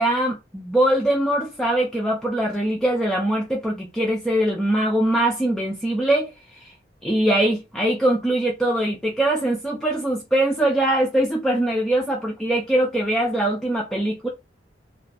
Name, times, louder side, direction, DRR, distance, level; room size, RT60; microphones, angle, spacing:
voice 1, 0.0-6.7 7.0-14.3, right 1 dB, 5° left, 0.4 m, -22 dB
2.5 x 2.4 x 3.2 m
head